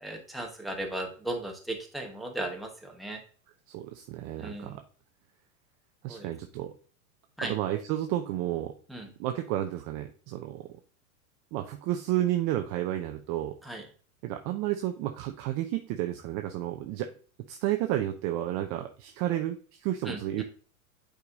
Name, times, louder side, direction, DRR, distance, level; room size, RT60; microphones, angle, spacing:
voice 1, 0.0-3.2 4.4-4.7 6.1-6.2 7.4-7.5 8.9-9.0 13.7-13.8 20.1-20.2, right 1 dB, ahead, 0 dB, 1.1 m, -36 dB
voice 2, 3.7-4.8 6.0-6.7 7.4-8.7 9.2-10.7 11.5-13.5 14.2-17.1 17.5-20.4, right 13 dB, 30° right, 6 dB, 0.5 m, -31 dB
8.2 x 4.9 x 2.6 m, 0.41 s
hypercardioid pair, 120°, 43 cm